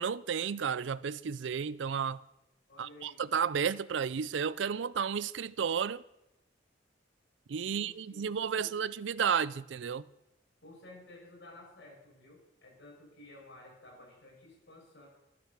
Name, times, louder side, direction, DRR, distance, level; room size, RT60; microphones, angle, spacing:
voice 1, 0.0-2.2 2.8-6.0 7.5-10.0, right 7 dB, 70° right, 0.4 m, -32 dB
voice 2, 2.7-3.2 7.6-8.3 8.5-8.7 10.6-15.1, left 1 dB, 65° left, 6.7 m, -53 dB
13.5 x 10.5 x 6.7 m
head